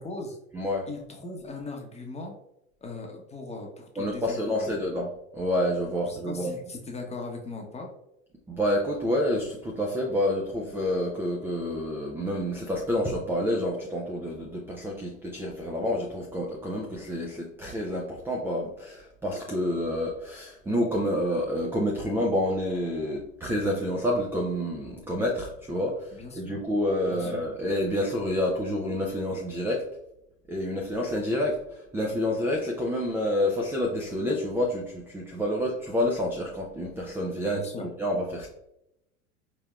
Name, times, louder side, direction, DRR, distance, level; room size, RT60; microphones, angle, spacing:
voice 1, 0.0-0.4 0.9-2.4 2.8-4.8 6.0-7.9 26.1-26.7 27.1-27.4 37.5-37.9, left 2 dB, 15° left, 1 dB, 0.8 m, -39 dB
voice 2, 0.5-0.9 4.0-6.5 8.5-26.0 26.4-29.8 30.5-31.6 31.9-38.5, left 1 dB, 5° right, -1 dB, 0.3 m, -28 dB
4.4 x 3.2 x 2.3 m, 0.82 s
hypercardioid pair, 80°, 41 cm